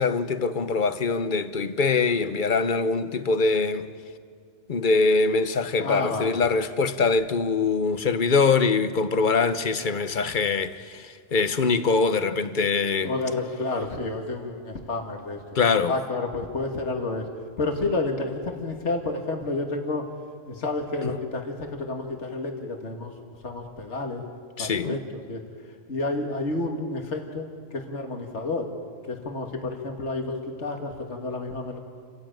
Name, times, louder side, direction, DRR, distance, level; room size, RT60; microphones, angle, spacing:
voice 1, 0.0-3.9 4.7-13.1 15.5-15.9 24.6-25.0, left 4 dB, 45° left, 1.1 m, -23 dB
voice 2, 5.8-6.4 13.0-15.4 15.9-17.3 17.6-20.1 20.5-23.1 23.4-24.2 24.6-25.0 25.3-25.4 25.9-28.7 29.1-31.8, left 2 dB, 65° left, 2.3 m, -30 dB
29.5 x 15.5 x 9.0 m
omnidirectional pair, 1.3 m